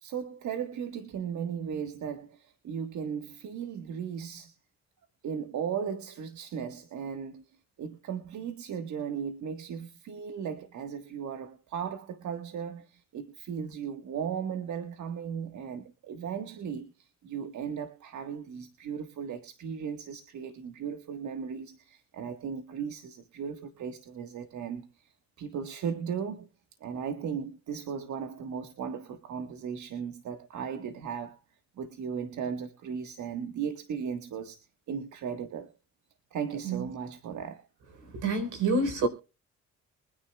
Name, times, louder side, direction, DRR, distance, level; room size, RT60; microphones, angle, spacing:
voice 1, 0.0-4.5 5.2-7.5 7.8-25.1 25.4-26.5 26.8-31.4 31.8-35.7 36.3-37.6, right 7 dB, 70° right, 1.6 m, -36 dB
voice 2, 38.0-39.1, right 3 dB, 85° right, 4.2 m, -28 dB
24.0 x 10.0 x 2.4 m
cardioid pair, 90°, 30 cm